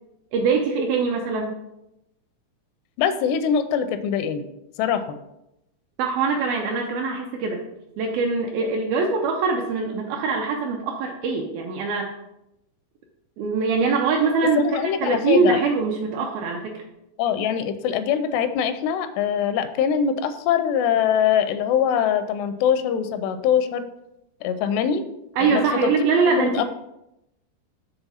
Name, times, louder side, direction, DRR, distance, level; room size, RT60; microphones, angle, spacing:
voice 1, 0.3-1.6 6.0-7.6 8.0-12.1 13.4-14.6 15.0-16.8 25.4-26.6, right 4 dB, 80° right, 1 dB, 2.2 m, -23 dB
voice 2, 3.0-4.5 4.8-5.0 14.6-15.6 17.2-23.9 24.4-25.0 25.4-25.9 26.4-26.6, left 8 dB, 85° left, 10 dB, 2.6 m, -23 dB
7.1 x 3.5 x 5.5 m, 0.86 s
omnidirectional pair, 4.8 m